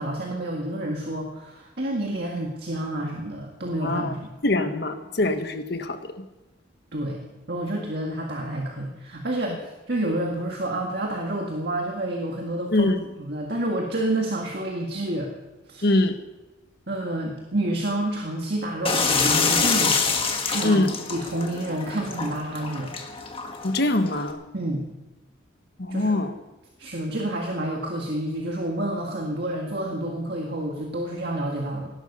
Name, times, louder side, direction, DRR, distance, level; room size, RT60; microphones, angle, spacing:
voice 1, 0.0-4.3 6.9-12.9 13.2-15.3 15.7-16.0 16.9-20.0 20.4-22.9 24.5-24.9 25.9-26.2 26.8-31.9, right 1 dB, 55° right, 0 dB, 1.9 m, -29 dB
voice 2, 3.8-4.1 4.4-6.0 12.7-13.0 15.8-16.2 20.6-20.9 23.6-24.4 25.8-26.3, left 2 dB, 55° left, 8 dB, 1.3 m, -23 dB
sound 1, 18.9-24.3, left 5 dB, 30° left, 1.6 m, -26 dB
18.0 x 12.0 x 5.5 m, 1.1 s
head